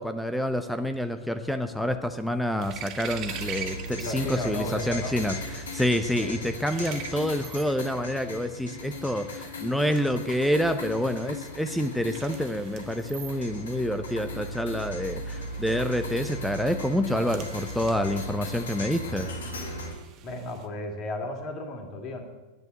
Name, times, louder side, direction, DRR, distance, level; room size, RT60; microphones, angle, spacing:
voice 1, 0.0-19.3, equal, ahead, 9 dB, 0.8 m, -28 dB
sound 1, 2.0-4.2 4.5-20.7, right 8 dB, 35° right, 1.2 m, -45 dB
sound 2, 3.0-19.9, left 1 dB, 65° left, 3.2 m, -37 dB
voice 2, 4.0-5.2 6.2-6.4 20.2-22.2, left 2 dB, 35° left, 4 dB, 2.9 m, -34 dB
10.5 x 10.5 x 7.8 m, 1.2 s
figure-of-eight pair, 90°, 0 cm